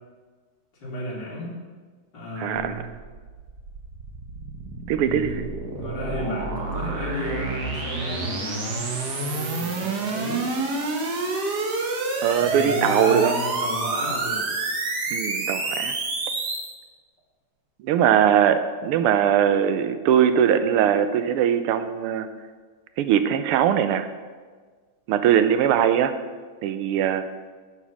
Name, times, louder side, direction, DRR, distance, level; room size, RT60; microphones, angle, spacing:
voice 1, 0.8-1.5 2.1-3.0 5.0-8.8 9.1-10.4 12.4-14.5, equal, 50° left, -5 dB, 3.2 m, -32 dB
voice 2, 2.4-2.8 4.9-5.4 12.2-13.3 15.1-16.0 17.8-22.3 23.0-24.1 25.1-26.1 26.6-27.3, right 9 dB, 85° right, 10 dB, 1.6 m, -21 dB
sound 1, 2.6-16.7, right 3 dB, 55° right, 1.6 m, -28 dB
9.1 x 7.2 x 6.1 m, 1.5 s
omnidirectional pair, 2.4 m